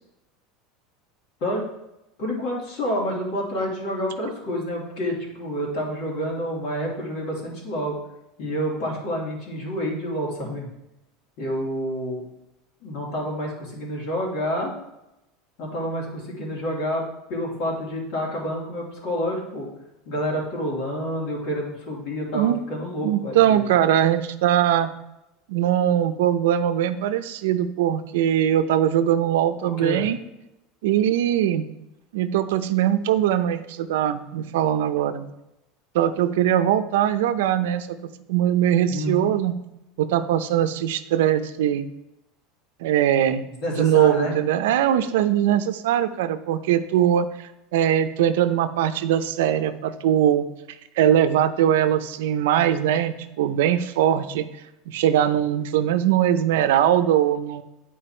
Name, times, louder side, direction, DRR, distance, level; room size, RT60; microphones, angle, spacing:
voice 1, 2.2-7.9 8.4-10.7 11.4-12.2 12.8-14.7 15.6-17.0 17.3-19.7 20.1-23.6 29.6-30.0 38.9-39.3 43.6-44.3, equal, 50° left, -3 dB, 2.8 m, -28 dB
voice 2, 23.0-24.9 25.5-30.2 30.8-31.7 32.1-35.3 35.9-37.9 38.3-39.5 40.0-41.9 42.8-43.4 43.7-50.4 51.0-54.5 54.9-57.6, right 10 dB, 80° right, 9 dB, 0.6 m, -21 dB
10.0 x 4.6 x 4.4 m, 0.91 s
supercardioid pair, 165°, 0 cm